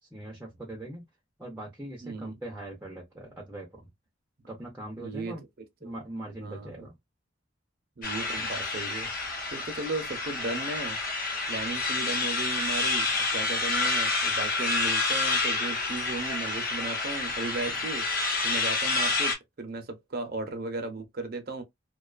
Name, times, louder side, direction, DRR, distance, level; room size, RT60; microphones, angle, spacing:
voice 1, 0.0-1.1 1.4-3.9 4.5-5.4 5.8-6.9, right 1 dB, 10° right, 0.6 m, -41 dB
voice 2, 2.0-2.3 5.0-5.4 5.8-5.9 6.4-6.7 8.0-11.0 11.5-18.1 18.4-21.6, right 3 dB, 50° right, 0.6 m, -36 dB
sound 1, 8.0-19.3, left 3 dB, 45° left, 0.9 m, -29 dB
2.4 x 2.3 x 2.4 m
head